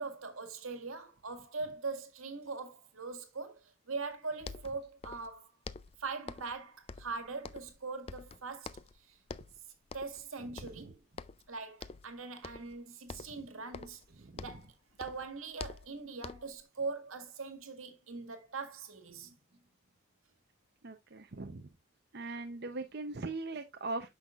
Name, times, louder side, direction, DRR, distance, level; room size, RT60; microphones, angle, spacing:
voice 1, 0.0-5.5 6.0-8.8 9.1-9.2 9.9-11.0 11.5-14.0 14.4-19.4 22.3-22.4, right 4 dB, 90° right, 1.8 m, -42 dB
sound 1, 4.1-4.2 4.4-5.4 5.6-6.6 6.9-7.8 8.1-9.0 9.3-9.6 9.9-10.3 10.6-11.5 11.8-12.1 12.4-12.8 13.1-14.7 15.0-16.6, left 4 dB, 30° left, 0.3 m, -47 dB
voice 2, 10.4-10.9 13.3-13.4 14.2-14.4 20.8-21.7 22.1-24.1, right 3 dB, 50° right, 0.7 m, -41 dB
9.5 x 6.2 x 2.4 m
head